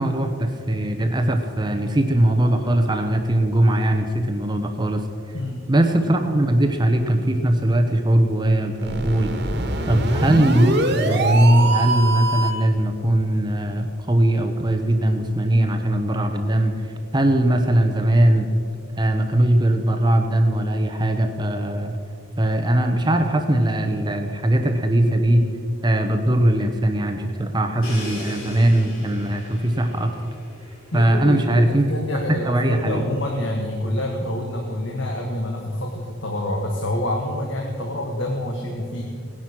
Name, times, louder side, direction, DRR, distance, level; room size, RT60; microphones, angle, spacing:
voice 1, 0.0-5.0 5.7-9.3 9.9-18.5 19.0-22.0 22.4-25.4 25.8-30.1 30.9-31.9 32.3-33.0, right 1 dB, 20° right, 5 dB, 0.8 m, -20 dB
voice 2, 5.3-5.7 9.9-10.2 30.9-39.0, left 1 dB, 60° left, 1 dB, 1.5 m, -27 dB
sound 1, 8.8-12.7, right 1 dB, 50° right, 1.6 m, -23 dB
Crash cymbal, 27.8-31.6, left 1 dB, 75° left, 4.4 m, -39 dB
17.5 x 10.5 x 6.1 m, 2.3 s
head